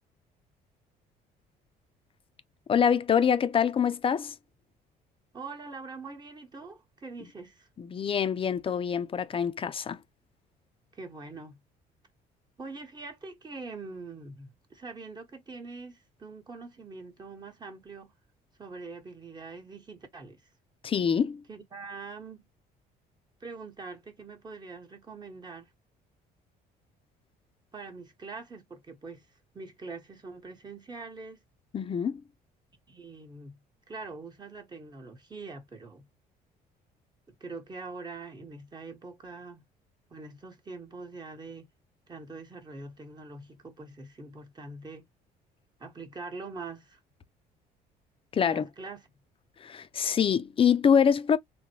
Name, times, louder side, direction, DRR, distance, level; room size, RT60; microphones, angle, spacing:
voice 1, 2.7-4.4 7.8-10.0 20.8-21.4 31.7-32.2 48.3-48.7 49.6-51.4, left 7 dB, 30° left, 0.5 m, -25 dB
voice 2, 5.3-7.7 10.9-11.6 12.6-18.1 18.6-20.4 21.5-22.5 23.4-25.7 27.7-29.2 29.5-31.4 32.9-33.6 33.9-36.0 37.3-39.6 40.1-41.7 42.1-45.0 45.8-47.0 48.4-49.1, right 3 dB, 25° right, 1.1 m, -43 dB
3.9 x 2.1 x 3.0 m
cardioid pair, 110°, 17 cm